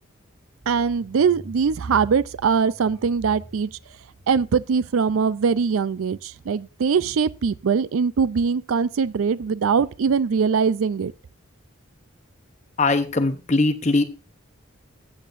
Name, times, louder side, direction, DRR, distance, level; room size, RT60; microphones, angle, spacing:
sound 1, 0.6-7.8 8.3-9.5 10.0-10.1 10.4-10.5 10.9-11.0 11.2-11.3 11.7-11.8 12.1-13.2, right 1 dB, 20° right, 1.8 m, -44 dB
voice 1, 0.7-3.7 4.3-11.1, right 6 dB, 85° right, 0.4 m, -22 dB
voice 2, 12.8-14.0, left 3 dB, 35° left, 0.8 m, -20 dB
14.5 x 8.7 x 2.6 m
head